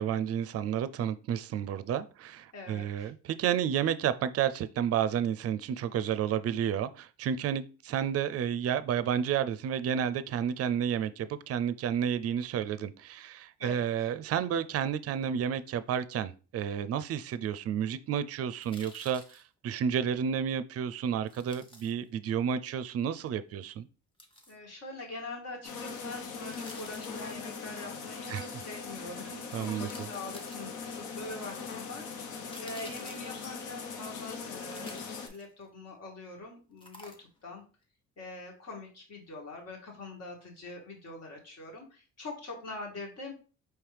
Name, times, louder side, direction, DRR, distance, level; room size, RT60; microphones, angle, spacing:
voice 1, 0.0-23.9 28.3-28.4 29.5-30.1, right 8 dB, 55° right, 0.4 m, -31 dB
voice 2, 2.5-3.1 13.6-14.1 24.5-37.6 38.2-43.3, left 2 dB, 55° left, 1.9 m, -44 dB
sound 1, 18.6-19.4 21.3-21.9 24.2-24.5 26.3-27.4 29.1-29.2 29.8-31.0 32.2-33.7 34.6-35.7 36.8-37.5 37.8-37.9, left 1 dB, 15° left, 1.0 m, -51 dB
sound 2, 25.6-35.3, left 5 dB, 85° left, 0.9 m, -40 dB
4.6 x 3.2 x 3.3 m
cardioid pair, 90°, 30 cm